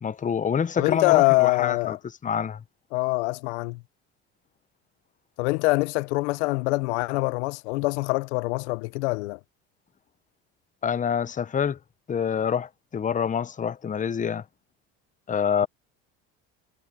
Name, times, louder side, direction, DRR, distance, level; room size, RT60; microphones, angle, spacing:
voice 1, 0.0-2.0 2.2-2.6 10.8-11.8 12.1-14.4 15.3-15.7, left 7 dB, 25° left, 0.8 m, -26 dB
voice 2, 0.8-2.0 2.9-3.8 5.4-9.4, left 24 dB, 85° left, 0.7 m, -24 dB
supercardioid pair, 85°, 34 cm